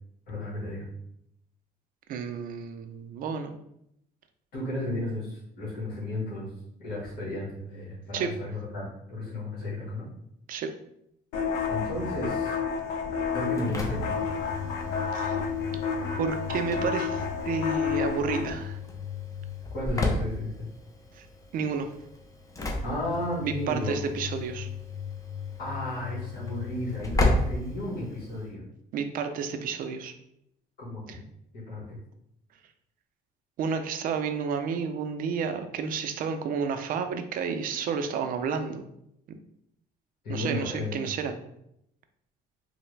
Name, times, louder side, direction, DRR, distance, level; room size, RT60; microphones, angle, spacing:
voice 1, 0.3-0.8 4.5-6.5 6.8-10.1 11.7-12.5 13.3-14.2 19.7-20.5 22.8-24.1 25.6-28.7 30.8-31.2 31.7-32.0 40.2-41.1, left 1 dB, 65° left, -8 dB, 1.2 m, -33 dB
voice 2, 2.1-3.6 8.1-8.3 10.5-10.7 15.1-15.4 16.2-18.8 21.1-21.3 21.5-21.9 23.4-24.7 28.9-30.1 31.1-31.2 33.6-38.9 40.3-41.4, right 6 dB, 55° right, 7 dB, 0.4 m, -31 dB
sound 1, 11.3-18.5, left 6 dB, 80° left, 0.5 m, -30 dB
Engine / Slam, 13.3-28.5, left 2 dB, 20° left, 0.5 m, -34 dB
3.3 x 2.1 x 3.1 m, 0.77 s
cardioid pair, 110°, 17 cm